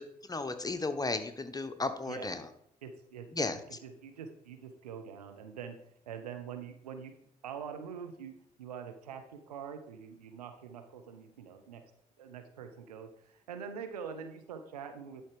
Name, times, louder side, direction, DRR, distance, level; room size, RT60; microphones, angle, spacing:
voice 1, 0.3-2.5 3.3-3.6, left 3 dB, 20° left, 9 dB, 1.0 m, -34 dB
voice 2, 2.8-5.8 6.1-7.1 7.4-11.8 12.2-15.2, right 7 dB, 85° right, 6 dB, 0.7 m, -44 dB
11.0 x 4.2 x 4.9 m, 0.75 s
figure-of-eight pair, 40°, 20 cm